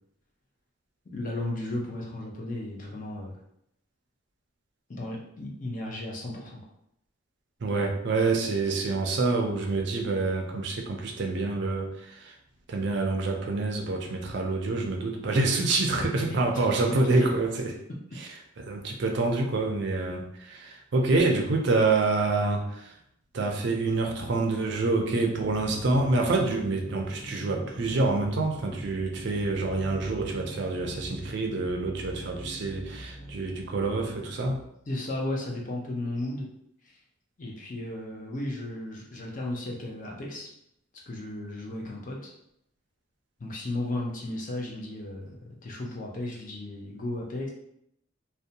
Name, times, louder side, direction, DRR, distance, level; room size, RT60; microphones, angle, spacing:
voice 1, 1.1-3.4 4.9-6.6 16.3-17.3 18.1-18.2 34.9-36.5 36.8-37.0 37.4-40.5 41.1-42.3 43.4-47.5, left 1 dB, 40° left, -2 dB, 0.5 m, -35 dB
voice 2, 7.6-12.3 12.7-17.8 18.2-18.3 18.6-22.9 23.3-34.6, right 3 dB, 60° right, 2 dB, 0.4 m, -27 dB
sound 1, 25.4-34.7, right 1 dB, 80° left, 0.8 m, -43 dB
2.5 x 2.1 x 2.7 m, 0.74 s
head